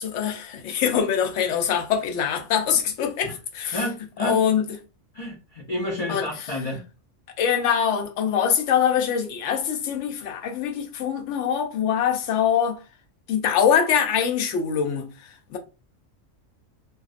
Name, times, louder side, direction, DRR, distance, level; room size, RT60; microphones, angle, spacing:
voice 1, 0.0-3.8 4.2-4.6 6.1-6.2 7.4-12.8 13.3-15.1 15.5-15.6, left 8 dB, 75° left, 0.9 m, -23 dB
voice 2, 3.7-4.4 5.1-6.8, left 1 dB, 45° left, 0.5 m, -30 dB
2.5 x 2.2 x 2.4 m
omnidirectional pair, 1.3 m